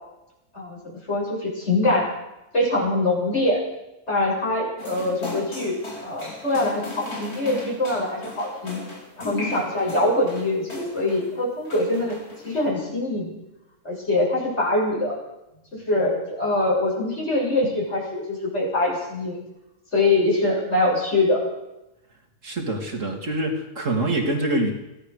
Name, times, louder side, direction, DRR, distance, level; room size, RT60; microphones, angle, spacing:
voice 1, 0.5-2.1 2.5-3.6 4.1-8.8 9.1-13.3 13.8-15.2 15.7-19.4 19.9-21.4, left 2 dB, 45° left, -3 dB, 7.9 m, -24 dB
sound 1, 4.8-11.3 11.7-12.6, left 2 dB, 70° left, 5.1 m, -37 dB
voice 2, 22.4-24.7, right 1 dB, 55° right, 3 dB, 3.3 m, -25 dB
24.5 x 17.0 x 6.6 m, 0.95 s
omnidirectional pair, 1.6 m